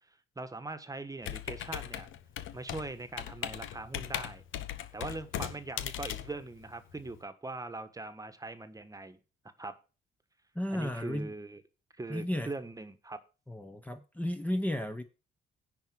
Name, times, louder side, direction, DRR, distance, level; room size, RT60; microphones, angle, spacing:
voice 1, 0.4-2.1 2.5-4.4 4.9-9.2 9.6-9.8 10.7-11.6 12.0-13.2, right 2 dB, 15° right, 1.4 m, -41 dB
Computer keyboard, 1.2-7.2, left 11 dB, 80° left, 1.1 m, -39 dB
voice 2, 10.5-11.3 12.1-12.5 13.5-15.0, left 1 dB, 10° left, 1.0 m, -33 dB
10.5 x 4.6 x 7.6 m
cardioid pair, 90°, 20 cm